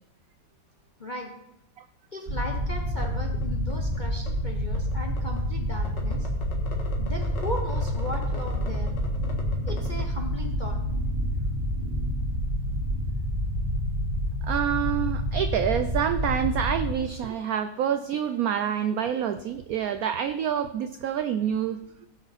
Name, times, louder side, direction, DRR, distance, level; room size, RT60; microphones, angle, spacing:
voice 1, 1.0-1.3 2.1-6.3 7.0-8.9 9.6-10.8, left 1 dB, 40° left, 1 dB, 0.7 m, -37 dB
sound 1, 2.3-16.9, equal, 30° right, 1.8 m, -28 dB
sound 2, 2.5-2.6 3.0-3.1 3.4-3.5 3.7-4.3 4.7-5.4 5.8-10.0, left 5 dB, 65° left, 2.2 m, -41 dB
voice 2, 14.4-21.8, right 9 dB, 80° right, 9 dB, 0.8 m, -27 dB
16.0 x 6.3 x 4.1 m, 0.84 s
omnidirectional pair, 2.1 m